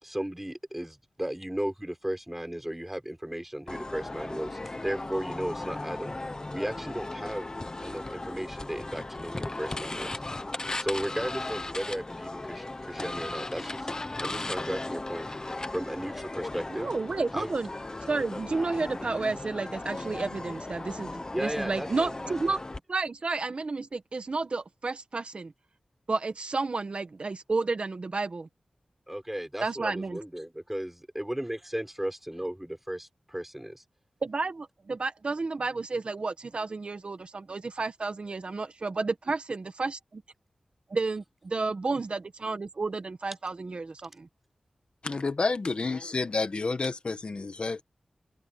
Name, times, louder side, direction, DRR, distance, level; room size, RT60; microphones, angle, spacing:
voice 1, 0.0-6.2 6.5-7.5 7.8-10.1 10.8-13.9 14.2-15.3 15.7-16.9 17.3-17.5 21.3-22.3 29.1-33.8, right 1 dB, 10° right, 3.9 m, -35 dB
sound 1, 3.7-22.8, left 2 dB, 30° left, 1.2 m, -37 dB
voice 2, 16.7-17.7 18.1-22.6 22.9-25.5 26.1-28.5 29.6-30.2 34.2-40.2 40.9-44.3, right 3 dB, 55° right, 1.6 m, -31 dB
voice 3, 45.0-47.8, left 3 dB, 50° left, 1.7 m, -30 dB
wide cardioid pair, 95°, 2 cm